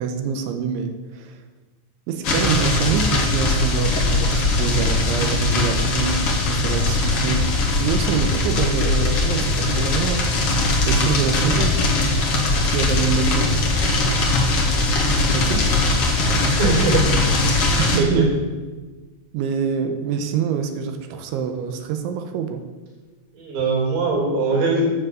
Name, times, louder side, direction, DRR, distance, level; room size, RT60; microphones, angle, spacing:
voice 1, 0.0-1.4 2.1-10.3 10.9-12.2 12.6-13.6 15.3-15.7 17.8-18.4 19.3-22.6, right 7 dB, 80° right, 6 dB, 3.2 m, -25 dB
sound 1, 2.2-18.0, left 2 dB, 65° left, 1.4 m, -20 dB
voice 2, 16.6-17.0 18.0-18.2 23.3-24.9, right 3 dB, 60° right, -2 dB, 5.6 m, -20 dB
12.5 x 7.4 x 7.6 m, 1.3 s
omnidirectional pair, 5.7 m